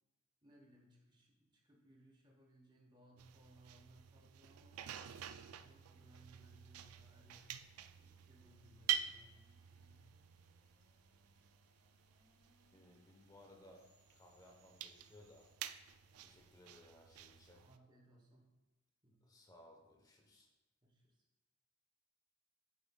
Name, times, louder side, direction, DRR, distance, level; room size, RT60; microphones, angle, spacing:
voice 1, 0.4-4.8 5.5-7.6 7.9-10.0 16.1-16.4 17.6-18.5 19.0-19.2 20.8-21.2, right 1 dB, 20° right, -1 dB, 1.1 m, -65 dB
sound 1, 3.2-17.8, right 10 dB, 90° right, 0.3 m, -48 dB
sound 2, 4.7-15.5, equal, 85° left, 2.2 m, -76 dB
voice 2, 12.7-13.8 14.1-15.5 16.2-17.6 19.2-20.5, left 1 dB, 15° left, 1 dB, 1.0 m, -62 dB
7.7 x 7.2 x 2.3 m, 1.1 s
head